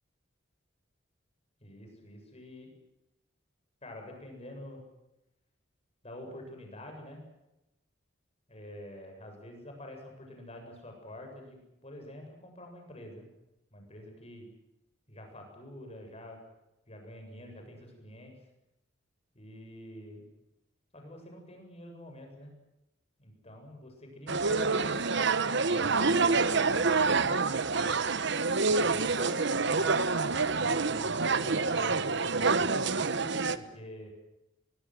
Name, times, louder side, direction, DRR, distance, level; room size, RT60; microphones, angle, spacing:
voice 1, 1.6-2.7 3.8-4.8 6.0-7.2 8.5-13.3 13.7-14.5 15.1-16.4 16.9-18.4 19.3-20.2 20.9-22.5 23.2-24.9 25.4-27.1 28.8-29.9 30.5-34.1, left 1 dB, 30° left, 3 dB, 7.8 m, -47 dB
sound 1, 24.3-33.6, right 4 dB, 60° right, 1.2 m, -27 dB
23.5 x 22.5 x 7.8 m, 0.92 s
head